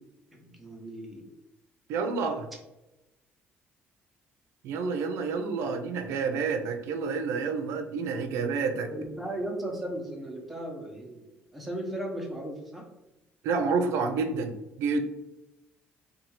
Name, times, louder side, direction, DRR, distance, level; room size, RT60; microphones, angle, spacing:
voice 1, 0.3-1.3 8.8-11.2 11.5-12.8, right 1 dB, ahead, -1 dB, 0.7 m, -36 dB
voice 2, 1.9-2.5 4.6-8.9 13.4-15.0, right 4 dB, 85° right, 6 dB, 0.4 m, -29 dB
2.6 x 2.3 x 2.9 m, 0.98 s
cardioid pair, 100°, 5 cm